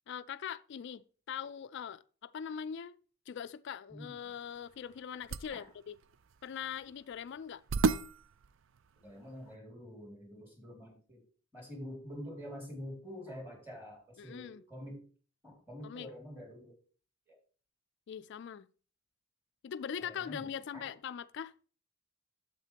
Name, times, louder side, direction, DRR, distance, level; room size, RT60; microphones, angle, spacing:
voice 1, 0.1-3.0 3.3-6.0 6.4-7.6 14.2-14.6 15.8-16.1 18.1-18.7 19.6-21.5, left 8 dB, 55° left, 0.3 m, -42 dB
sound 1, 4.2-9.5, right 4 dB, 60° right, 0.4 m, -37 dB
voice 2, 9.0-11.2 11.5-15.1 15.4-16.8 17.3-17.4 20.0-20.9, equal, 10° right, 2.4 m, -47 dB
9.0 x 7.6 x 2.9 m
head